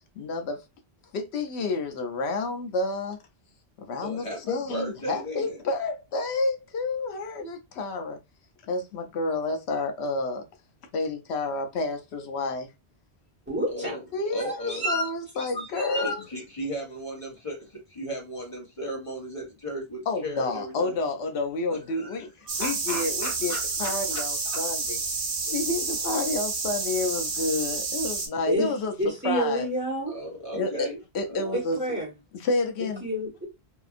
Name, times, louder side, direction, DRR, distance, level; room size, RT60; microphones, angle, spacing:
voice 1, 0.2-0.6 1.1-3.2 3.8-8.2 8.7-10.4 10.9-12.7 14.1-16.2 20.1-22.3 22.6-23.5 23.8-25.0 25.5-28.9 29.2-29.7 30.5-30.9 31.1-31.8 32.3-33.0, left 3 dB, 90° left, 0.9 m, -29 dB
voice 2, 4.0-5.6 13.7-14.0 14.3-14.9 16.0-17.6 17.9-21.0 21.7-24.6 30.1-31.0 31.3-31.7, equal, 30° left, 1.1 m, -36 dB
voice 3, 13.5-13.9 14.4-15.1 15.4-16.2 28.5-28.7 29.0-30.1 31.8-32.1 32.8-33.5, equal, 10° right, 1.2 m, -29 dB
sound 1, 22.5-28.3, right 4 dB, 65° right, 1.0 m, -30 dB
2.8 x 2.5 x 2.4 m
omnidirectional pair, 1.1 m